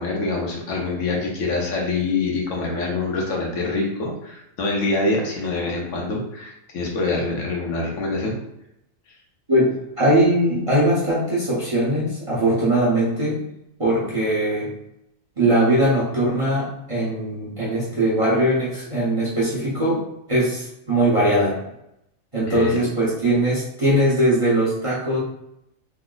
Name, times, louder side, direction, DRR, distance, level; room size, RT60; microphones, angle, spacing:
voice 1, 0.0-8.4 22.5-22.8, left 3 dB, 65° left, -1 dB, 1.0 m, -25 dB
voice 2, 9.5-13.4 13.8-14.7 15.4-20.0 20.3-21.6 22.3-25.2, right 1 dB, 30° right, -8 dB, 0.7 m, -20 dB
3.2 x 2.0 x 3.7 m, 0.81 s
omnidirectional pair, 1.4 m